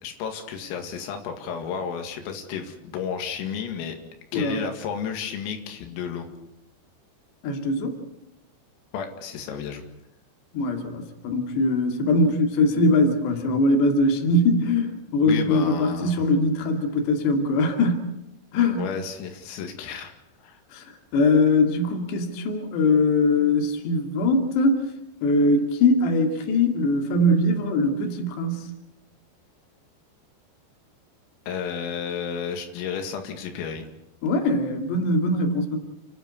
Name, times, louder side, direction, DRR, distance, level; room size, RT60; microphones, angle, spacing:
voice 1, 0.0-4.0 4.3-6.3 8.9-9.8 15.2-16.2 18.8-20.1 20.4-20.6 31.5-33.9, left 7 dB, 90° left, 5 dB, 4.8 m, -32 dB
voice 2, 4.3-4.6 7.4-8.0 10.5-18.0 18.5-18.9 20.7-24.9 25.2-28.7 34.2-35.8, left 2 dB, 60° left, 4 dB, 4.4 m, -22 dB
30.0 x 12.0 x 9.7 m, 0.85 s
omnidirectional pair, 5.8 m